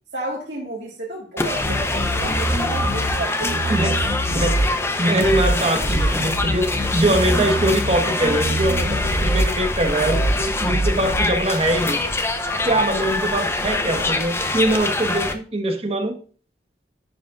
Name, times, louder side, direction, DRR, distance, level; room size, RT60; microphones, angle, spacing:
voice 1, 0.1-3.7, right 2 dB, 70° right, 1.7 m, -32 dB
sound 1, 1.4-15.3, left 2 dB, 15° left, 0.7 m, -24 dB
sound 2, 1.6-3.1 3.4-4.7 5.2-5.5 5.8-7.9 8.2-9.5 10.0-10.3 10.6-11.2, right 1 dB, 10° right, 2.4 m, -24 dB
voice 2, 5.0-12.0 12.6-16.2, right 1 dB, 35° right, 1.1 m, -22 dB
11.0 x 5.0 x 2.4 m
head